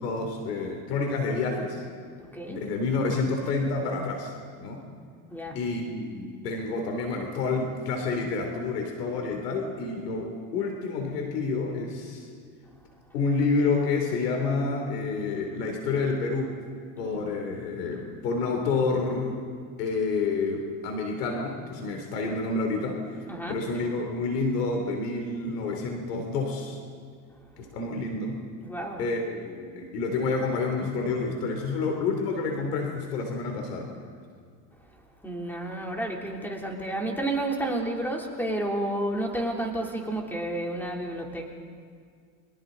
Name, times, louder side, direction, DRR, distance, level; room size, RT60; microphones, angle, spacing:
voice 1, 0.0-1.8 2.5-4.3 4.6-4.8 5.5-12.3 13.1-16.5 17.0-19.4 19.8-23.0 23.5-26.8 27.6-28.4 29.0-33.9, left 3 dB, 85° left, 2 dB, 3.3 m, -29 dB
voice 2, 28.6-29.0 35.2-41.5, right 1 dB, 5° left, 0 dB, 3.4 m, -31 dB
30.0 x 24.0 x 4.0 m, 2.1 s
supercardioid pair, 110°, 47 cm